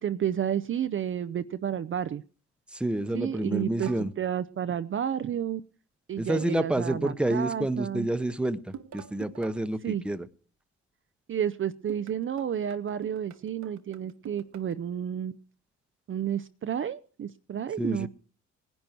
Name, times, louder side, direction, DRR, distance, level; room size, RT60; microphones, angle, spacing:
voice 1, 0.0-2.2 3.1-3.9 4.2-5.6 6.1-8.1 9.8-10.0 11.3-15.3 16.1-18.1, right 9 dB, 45° right, 0.6 m, -31 dB
voice 2, 2.7-4.1 6.2-10.3 17.8-18.1, right 1 dB, 5° right, 0.9 m, -29 dB
sound 1, 3.8-4.1 6.3-6.8 8.7-9.6 11.9-14.8, right 8 dB, 70° right, 1.2 m, -45 dB
18.5 x 10.5 x 4.5 m
cardioid pair, 90°, 30 cm